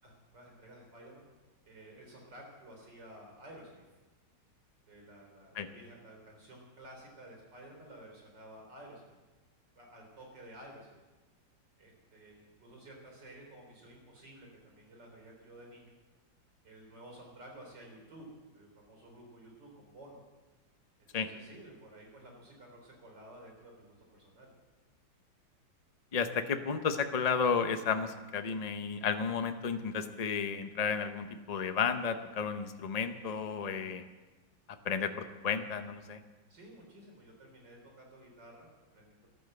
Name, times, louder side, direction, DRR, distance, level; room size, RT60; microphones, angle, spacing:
voice 1, 0.0-1.2 1.6-3.8 4.9-9.2 9.8-11.0 11.8-15.9 16.6-18.3 18.5-20.2 21.2-24.5 36.5-38.7 38.9-39.3, right 1 dB, 65° right, 0 dB, 4.6 m, -53 dB
voice 2, 26.1-34.0 34.8-36.2, left 6 dB, 55° left, 8 dB, 0.4 m, -32 dB
13.5 x 12.0 x 7.8 m, 1.2 s
omnidirectional pair, 2.1 m